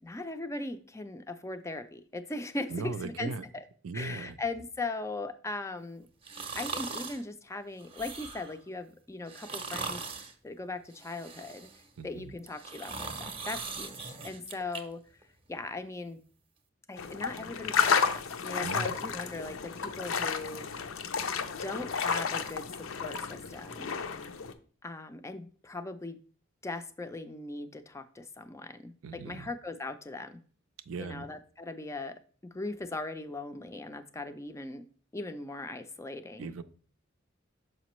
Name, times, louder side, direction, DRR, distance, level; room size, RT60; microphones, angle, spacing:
voice 1, 0.0-3.6 3.9-6.1 6.5-10.0 10.4-11.7 12.0-15.0 15.5-16.2 16.9-20.7 21.6-22.7 23.0-23.9 24.8-26.2 26.6-30.4 31.0-34.8 35.1-36.5, left 2 dB, 15° left, 10 dB, 0.4 m, -39 dB
voice 2, 2.7-3.4 3.8-4.3 12.0-12.3 18.6-19.0 29.0-29.5 30.9-31.3 36.4-36.6, right 4 dB, 90° right, 12 dB, 0.5 m, -38 dB
sound 1, 6.2-7.2 7.8-8.6 9.3-10.3 10.9-11.9 12.4-14.8 15.2-15.3, right 4 dB, 30° right, 0.6 m, -40 dB
sound 2, 17.0-24.5, left 6 dB, 85° left, 0.5 m, -32 dB
6.5 x 5.0 x 3.0 m, 0.42 s
head